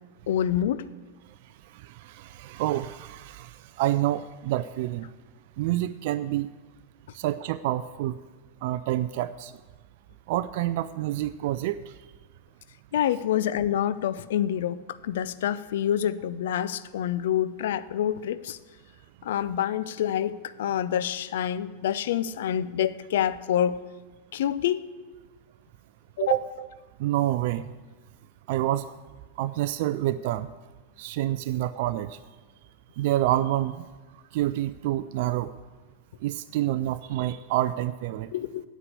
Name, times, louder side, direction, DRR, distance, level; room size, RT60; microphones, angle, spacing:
voice 1, 0.3-0.8 12.9-18.6 19.2-23.8 24.3-24.9 26.2-26.3 38.3-38.6, left 10 dB, 55° left, 15 dB, 0.5 m, -27 dB
voice 2, 1.8-3.5 3.8-5.1 5.6-6.5 7.1-8.1 8.6-9.5 10.3-11.8 26.2-26.7 27.0-27.6 28.5-28.9 29.4-30.5 31.0-32.2 33.0-33.8 34.3-35.5 36.2-38.3, right 14 dB, 50° right, 13 dB, 0.3 m, -27 dB
9.6 x 8.2 x 8.2 m, 1.3 s
figure-of-eight pair, 90°, 0 cm